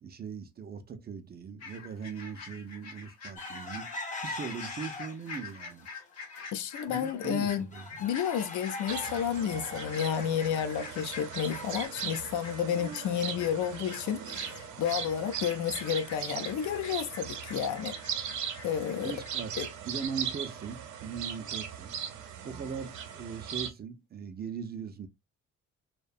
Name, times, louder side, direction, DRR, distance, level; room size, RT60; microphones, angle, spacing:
voice 1, 0.0-3.9 4.2-5.9 6.9-8.0 19.0-21.9 22.4-25.1, right 6 dB, 35° right, 0.4 m, -40 dB
sound 1, 1.6-19.7 19.9-20.1, left 4 dB, 55° left, 0.9 m, -46 dB
sound 2, 3.4-5.4 5.8-6.4 6.8-6.9 7.2-11.9, left 2 dB, 25° left, 0.6 m, -41 dB
voice 2, 6.5-7.7 8.0-18.0 18.6-19.1 19.6-19.7, left 8 dB, 75° left, 0.5 m, -31 dB
sound 3, 8.9-23.7, right 8 dB, 75° right, 0.6 m, -39 dB
2.7 x 2.1 x 2.3 m
cardioid pair, 90°, 30 cm